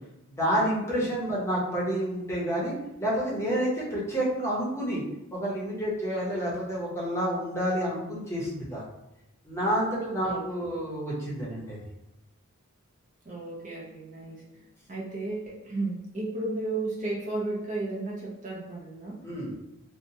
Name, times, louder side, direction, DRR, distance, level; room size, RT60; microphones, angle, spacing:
voice 1, 0.4-5.0 5.3-8.8 9.4-11.8 19.2-19.5, equal, 10° left, -6 dB, 0.7 m, -29 dB
voice 2, 13.3-19.2, right 2 dB, 35° right, -5 dB, 0.5 m, -34 dB
2.8 x 2.1 x 2.7 m, 0.88 s
head